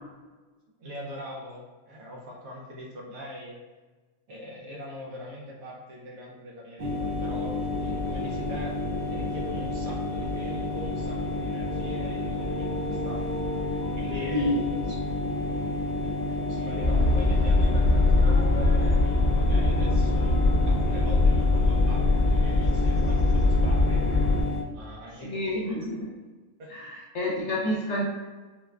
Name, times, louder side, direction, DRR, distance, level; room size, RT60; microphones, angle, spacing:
voice 1, 0.8-3.6 4.3-8.8 9.1-14.5 14.9-15.0 15.4-15.5 16.0-25.8 26.6-26.7, left 1 dB, 80° right, -2 dB, 1.2 m, -42 dB
sound 1, 6.8-24.6, left 2 dB, 60° right, 0.4 m, -30 dB
sound 2, 11.7-21.1, equal, 35° right, 0.9 m, -43 dB
sound 3, 16.8-24.4, left 2 dB, 40° left, 0.8 m, -22 dB
voice 2, 25.2-26.1 26.7-28.0, left 1 dB, 60° left, -4 dB, 1.0 m, -29 dB
4.6 x 2.2 x 2.3 m, 1.3 s
omnidirectional pair, 1.4 m